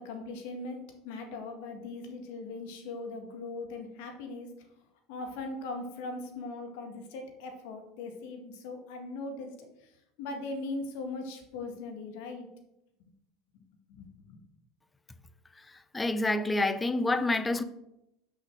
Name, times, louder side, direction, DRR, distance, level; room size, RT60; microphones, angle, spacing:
voice 1, 0.0-4.5 5.1-9.9 10.2-12.5 13.9-14.4, left 3 dB, 75° left, 1.9 m, -40 dB
voice 2, 15.6-17.6, left 2 dB, 15° left, 0.7 m, -28 dB
6.4 x 5.8 x 6.2 m
hypercardioid pair, 95°, 0 cm